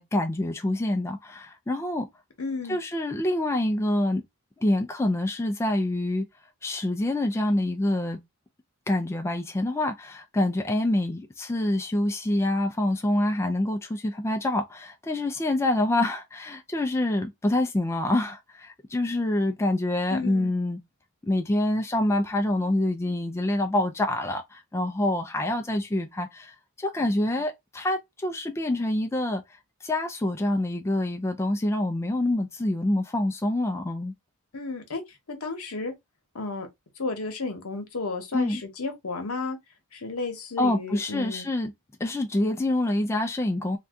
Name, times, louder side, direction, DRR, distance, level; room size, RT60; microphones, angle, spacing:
voice 1, 0.0-2.1 2.7-4.2 4.6-6.2 6.6-8.2 8.9-20.8 21.2-29.4 29.8-34.1 38.3-38.6 40.6-41.7 42.0-43.8, left 1 dB, 10° left, 0.3 m, -26 dB
voice 2, 2.4-2.8 20.1-20.5 34.5-35.0 35.3-35.9 36.3-36.7 37.0-39.6 39.9-41.5, left 3 dB, 70° left, 0.9 m, -32 dB
2.6 x 2.2 x 3.5 m
head